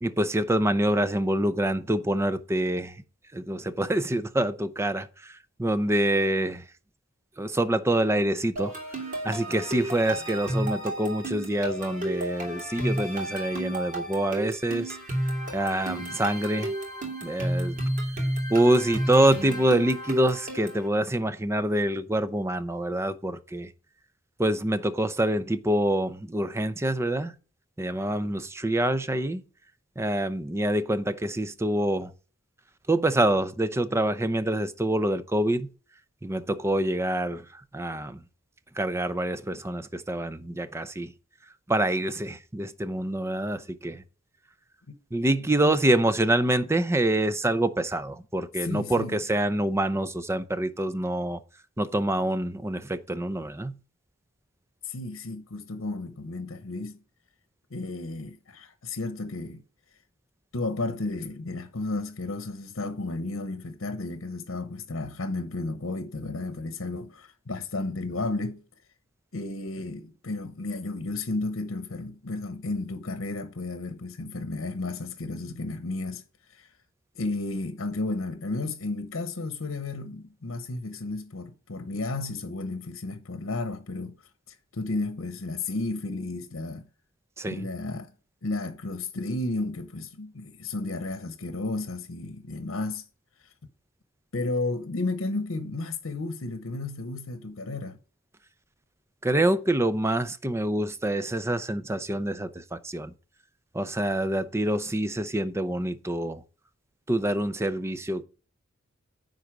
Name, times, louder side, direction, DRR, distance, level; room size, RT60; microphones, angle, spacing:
voice 1, 0.0-3.0 3.3-6.6 7.4-8.7 9.2-15.0 15.5-16.7 17.2-17.8 18.5-23.7 24.4-27.3 27.8-29.4 30.0-32.1 32.9-35.7 36.2-38.2 38.8-41.1 41.7-44.0 45.1-51.4 51.8-53.8 87.4-87.6 99.2-103.1 103.7-106.4 107.1-108.2, right 1 dB, 15° right, 0.5 m, -26 dB
sound 1, 8.6-20.9, right 1 dB, 40° right, 2.7 m, -32 dB
voice 2, 48.6-49.2 54.8-57.0 57.7-59.6 60.5-68.6 69.3-76.2 76.5-76.7 77.1-84.1 84.5-86.9 87.5-88.1 88.4-93.0 94.3-98.0, left 2 dB, 75° left, 0.9 m, -33 dB
9.8 x 4.0 x 6.1 m
head